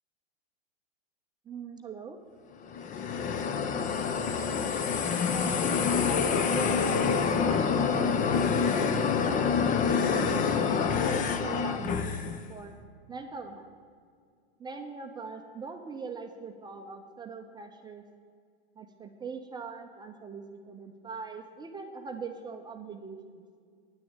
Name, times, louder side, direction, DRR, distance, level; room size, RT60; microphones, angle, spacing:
voice 1, 1.5-2.2 5.3-6.2 6.5-8.8 9.2-12.7 13.1-13.8 14.6-18.0 18.8-23.4, right 4 dB, 15° right, 4 dB, 0.7 m, -42 dB
sound 1, 2.7-12.4, left 6 dB, 25° left, 0.7 m, -27 dB
10.0 x 6.9 x 8.9 m, 2.1 s
hypercardioid pair, 120°, 32 cm